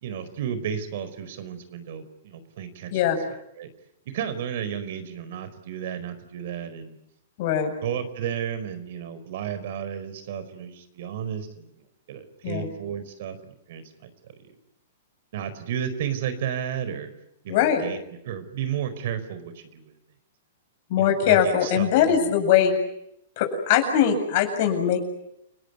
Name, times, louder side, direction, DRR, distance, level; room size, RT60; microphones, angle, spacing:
voice 1, 0.0-2.9 3.6-3.7 4.1-7.0 7.8-11.7 12.1-14.1 15.3-17.1 17.4-19.9 21.0-22.3, right 8 dB, 65° right, 11 dB, 4.8 m, -33 dB
voice 2, 7.4-7.7 12.4-12.7 17.5-17.8 20.9-22.8 23.4-25.0, left 9 dB, 55° left, 6 dB, 7.6 m, -21 dB
30.0 x 19.0 x 9.7 m, 0.79 s
hypercardioid pair, 130°, 0 cm